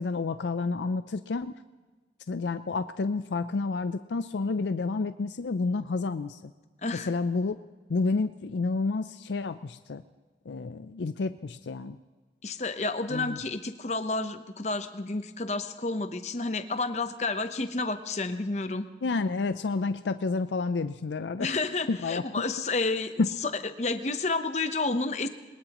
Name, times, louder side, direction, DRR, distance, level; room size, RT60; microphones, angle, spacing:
voice 1, 0.0-1.5 2.3-6.5 6.9-7.6 7.9-10.0 10.5-12.0 13.1-13.4 19.0-21.6 21.9-22.2 23.2-23.3, left 3 dB, 85° left, 11 dB, 0.5 m, -30 dB
voice 2, 12.4-18.9 21.4-23.1 23.4-23.5 23.8-25.3, left 3 dB, 40° left, 9 dB, 0.8 m, -30 dB
22.0 x 20.0 x 3.0 m, 1.3 s
head